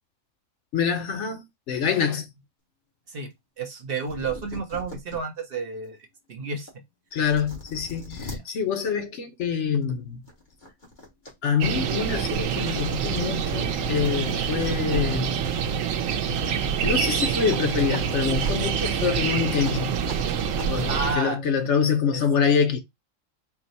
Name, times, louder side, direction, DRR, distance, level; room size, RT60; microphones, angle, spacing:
voice 1, 0.7-2.3 7.1-10.2 11.4-15.4 16.8-20.0 20.7-22.8, left 6 dB, 70° left, 1.0 m, -25 dB
voice 2, 3.1-6.0 6.3-6.7 8.3-8.4 20.9-21.4 22.1-22.2, right 4 dB, 55° right, 0.8 m, -31 dB
sound 1, 3.8-5.2 5.7-5.8 6.7-6.8 7.1-8.4 9.7-9.9 10.3-11.3 11.7-15.2 17.4-17.7 17.9-18.0 18.4-18.5 19.6-19.7 20.1-20.2 20.5-20.7, left 1 dB, 40° left, 1.4 m, -38 dB
sound 2, 11.6-21.2, right 7 dB, 85° right, 1.0 m, -26 dB
4.5 x 2.1 x 4.0 m
omnidirectional pair, 1.3 m